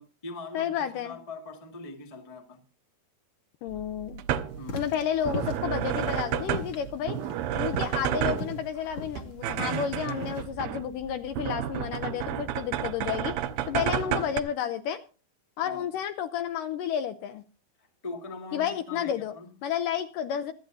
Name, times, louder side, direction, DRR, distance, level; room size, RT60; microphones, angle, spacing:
voice 1, 0.0-2.6 4.6-4.9 5.2-5.5 11.4-11.7 13.8-14.3 15.6-15.9 17.8-19.5, left 3 dB, 20° left, 1.0 m, -42 dB
voice 2, 0.5-1.2 3.6-4.2 4.7-7.2 7.5-15.0 15.6-17.4 18.5-19.3 19.6-20.5, left 9 dB, 75° left, 2.1 m, -31 dB
sound 1, 3.7-14.4, right 10 dB, 80° right, 2.5 m, -31 dB
sound 2, 4.6-10.4, left 1 dB, 45° left, 3.0 m, -39 dB
25.5 x 9.0 x 2.7 m
omnidirectional pair, 4.3 m